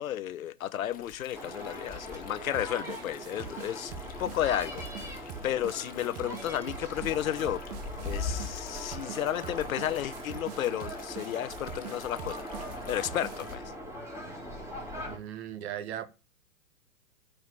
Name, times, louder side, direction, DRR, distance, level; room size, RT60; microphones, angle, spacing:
voice 1, 0.0-3.9 4.2-4.8 5.4-7.6 8.0-12.5 12.9-13.6, left 11 dB, 60° left, 0.8 m, -32 dB
Stream, 0.9-13.5, left 7 dB, 20° left, 1.6 m, -53 dB
sound 1, 1.3-15.2, left 1 dB, 5° right, 4.5 m, -40 dB
sound 2, 2.5-13.6, right 10 dB, 30° right, 0.7 m, -44 dB
voice 2, 15.1-16.1, right 10 dB, 45° right, 1.5 m, -37 dB
9.4 x 5.0 x 7.1 m
hypercardioid pair, 120°, 46 cm